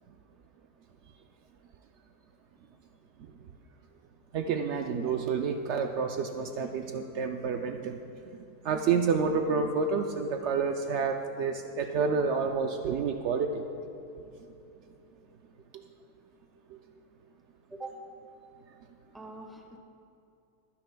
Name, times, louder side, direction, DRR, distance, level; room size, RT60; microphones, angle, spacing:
voice 1, 4.3-8.0 8.6-13.6 15.7-15.8 16.7-16.8, right 5 dB, 75° right, 4 dB, 0.6 m, -29 dB
voice 2, 19.1-19.8, right 2 dB, ahead, 2 dB, 0.7 m, -43 dB
25.0 x 9.9 x 2.2 m, 2.8 s
omnidirectional pair, 1.8 m